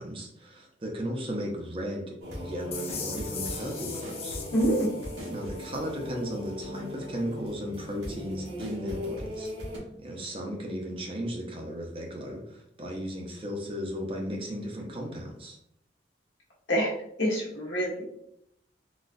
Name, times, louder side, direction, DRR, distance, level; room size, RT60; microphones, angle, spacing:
voice 1, 0.0-4.4 5.3-9.5 10.0-15.6, equal, 30° right, 1 dB, 0.5 m, -35 dB
sound 1, 2.2-9.8, left 1 dB, 80° right, 1.2 m, -38 dB
sound 2, 2.7-5.7, left 6 dB, 35° left, 0.4 m, -39 dB
voice 2, 4.5-4.9 16.7-16.9 17.2-18.1, equal, 80° left, -4 dB, 1.1 m, -26 dB
3.9 x 2.3 x 2.5 m, 0.74 s
head